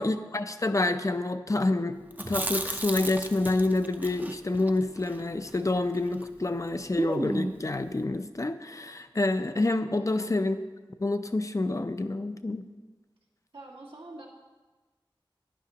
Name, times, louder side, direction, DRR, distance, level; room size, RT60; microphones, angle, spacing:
voice 1, 0.0-10.6 11.0-12.7, left 2 dB, 35° left, 9 dB, 0.5 m, -28 dB
Chewing mastication, 2.1-6.3 6.5-6.6 7.0-7.7, right 1 dB, 20° right, 0.5 m, -34 dB
voice 2, 10.0-10.4 13.5-14.3, right 2 dB, 90° right, -4 dB, 1.9 m, -46 dB
11.0 x 9.9 x 2.9 m, 1.3 s
wide cardioid pair, 50°, 9 cm